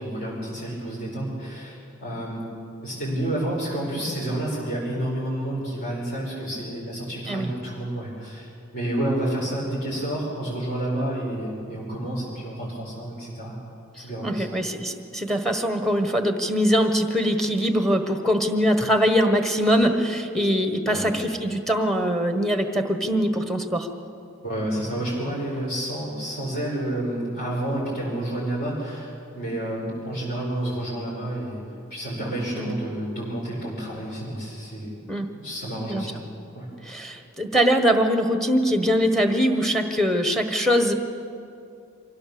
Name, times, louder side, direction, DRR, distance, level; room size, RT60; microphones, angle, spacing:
voice 1, 0.0-2.4 2.8-8.5 8.7-13.5 14.0-14.5 20.9-21.1 24.4-31.6 31.9-34.9 35.3-36.2 36.5-36.7, right 1 dB, 50° left, -7 dB, 5.2 m, -29 dB
voice 2, 14.2-23.9 32.5-32.7 35.1-35.3 35.9-36.1 36.8-40.9, equal, ahead, 6 dB, 1.3 m, -22 dB
24.5 x 16.5 x 6.9 m, 2.6 s
head